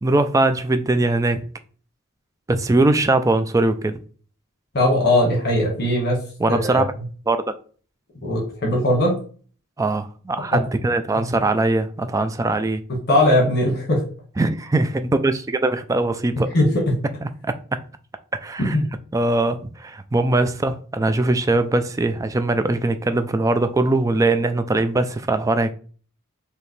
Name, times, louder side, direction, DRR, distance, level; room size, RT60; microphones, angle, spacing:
voice 1, 0.0-1.4 2.5-4.0 6.4-6.8 7.3-7.4 9.8-12.8 14.4-16.5 17.2-17.8 18.4-18.8 19.1-25.7, right 2 dB, 15° right, 0.3 m, -21 dB
voice 2, 4.7-6.2 6.5-6.8 8.2-9.2 10.5-10.6 11.1-11.2 13.1-14.0 16.5-17.0 18.6-18.8, left 1 dB, 50° left, 1.4 m, -19 dB
5.0 x 2.8 x 3.2 m
head